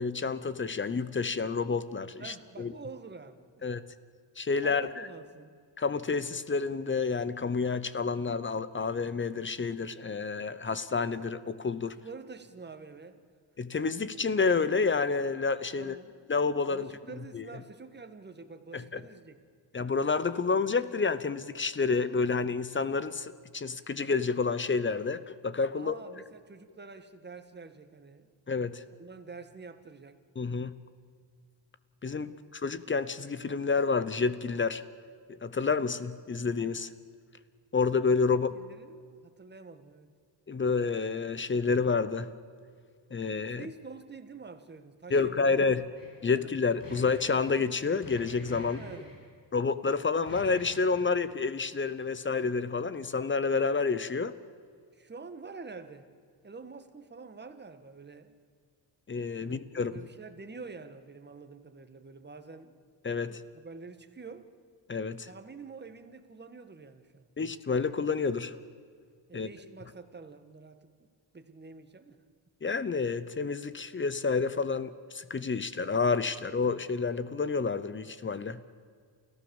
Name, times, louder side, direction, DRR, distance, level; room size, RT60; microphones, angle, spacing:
voice 1, 0.0-2.7 3.6-3.8 4.4-4.9 5.8-11.9 13.6-15.9 16.3-16.9 17.3-17.4 18.7-19.0 19.7-25.9 28.5-28.8 30.4-30.8 32.0-34.8 35.4-36.9 37.7-38.5 40.5-42.3 43.1-43.7 45.1-45.8 46.2-48.8 49.5-54.3 59.1-59.9 63.0-63.4 64.9-65.3 67.4-68.5 69.3-69.5 72.6-78.6, left 4 dB, 25° left, 15 dB, 0.8 m, -29 dB
voice 2, 2.2-3.7 4.6-5.6 12.0-13.2 15.8-16.2 16.7-19.4 25.7-28.3 29.0-30.2 32.2-32.6 38.3-40.1 43.5-45.7 46.3-46.5 48.6-49.3 54.9-56.1 56.4-58.3 59.4-62.8 63.1-64.5 65.2-67.3 69.3-71.1 71.3-72.2, right 4 dB, 25° right, 9 dB, 1.7 m, -47 dB
sound 1, 45.9-46.2 46.6-47.7 48.0-49.3 50.2-51.0, left 1 dB, 45° left, 6.9 m, -47 dB
28.5 x 15.0 x 7.2 m, 2.1 s
cardioid pair, 115°, 45 cm